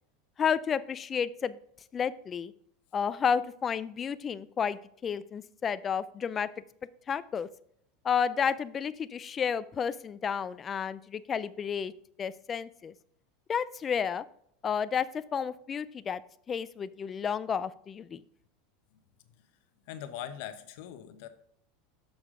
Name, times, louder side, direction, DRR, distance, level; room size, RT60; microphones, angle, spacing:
voice 1, 0.4-1.6 1.9-2.5 2.9-6.5 7.1-7.5 8.0-11.9 12.2-12.9 13.5-14.2 14.6-16.2 16.5-18.2, left 7 dB, 25° left, 15 dB, 0.3 m, -31 dB
voice 2, 19.9-21.3, left 10 dB, 65° left, 9 dB, 0.9 m, -41 dB
6.9 x 6.4 x 3.7 m, 0.69 s
supercardioid pair, 140°, 0 cm